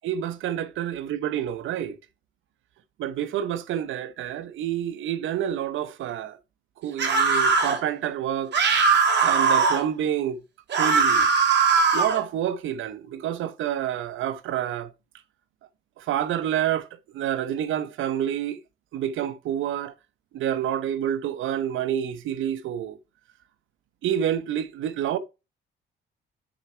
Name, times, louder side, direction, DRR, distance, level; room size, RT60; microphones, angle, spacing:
voice 1, 0.0-2.0 3.0-6.4 6.8-8.5 9.2-10.4 10.7-11.3 11.9-14.9 16.0-16.9 17.1-18.6 18.9-19.9 20.3-23.0 24.0-25.2, right 10 dB, 80° right, 0.9 m, -28 dB
sound 1, 7.0-7.8 8.5-9.8 10.7-12.2, right 5 dB, 60° right, 2.8 m, -20 dB
6.4 x 4.3 x 4.5 m
cardioid pair, 90°, 20 cm